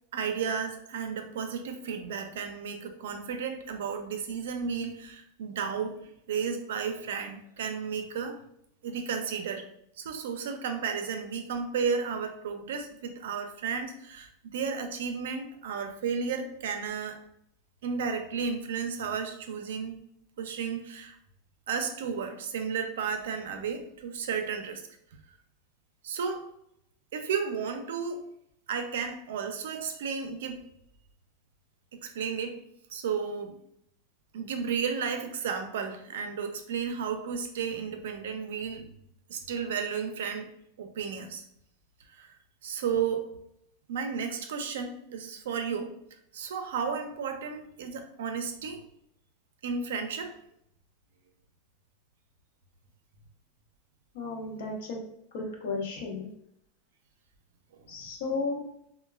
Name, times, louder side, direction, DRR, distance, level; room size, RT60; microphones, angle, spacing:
voice 1, 0.1-8.4 8.8-9.7 10.0-17.2 17.8-20.0 20.4-21.2 21.7-24.8 26.0-26.5 27.1-28.2 28.7-30.6 31.9-32.6 32.9-33.6 34.3-38.9 39.3-40.5 40.8-41.4 42.1-42.3 42.6-43.3 43.9-45.9 46.3-48.8 49.6-50.3 57.8-58.1, right 6 dB, 85° right, 6 dB, 0.4 m, -33 dB
voice 2, 54.1-55.0 55.3-56.3 57.9-58.6, left 3 dB, 75° left, 0 dB, 0.8 m, -33 dB
3.0 x 2.1 x 2.3 m, 0.74 s
supercardioid pair, 135°, 0 cm